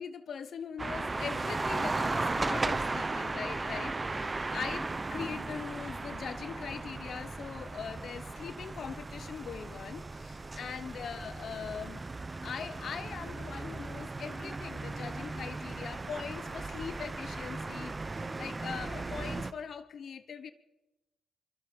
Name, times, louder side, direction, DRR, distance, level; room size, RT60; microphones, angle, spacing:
voice 1, 0.0-12.0 12.4-20.5, left 7 dB, 65° left, 12 dB, 0.9 m, -41 dB
sound 1, 0.8-19.5, right 3 dB, 25° right, 0.9 m, -36 dB
24.5 x 20.5 x 5.3 m, 1.0 s
cardioid pair, 80°, 0 cm